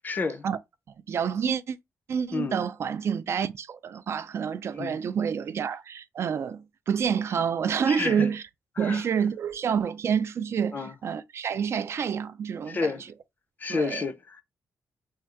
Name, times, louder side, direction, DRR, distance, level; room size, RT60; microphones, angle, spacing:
voice 1, 0.0-0.5 2.3-2.6 4.7-5.0 7.9-8.3 8.8-9.1 10.7-10.9 12.7-13.0 13.6-14.4, left 4 dB, 30° left, 0.5 m, -30 dB
voice 2, 1.1-1.8 2.1-8.4 8.8-12.9 13.7-14.0, right 7 dB, 50° right, 0.3 m, -28 dB
3.6 x 2.3 x 4.3 m
wide cardioid pair, 160°, 6 cm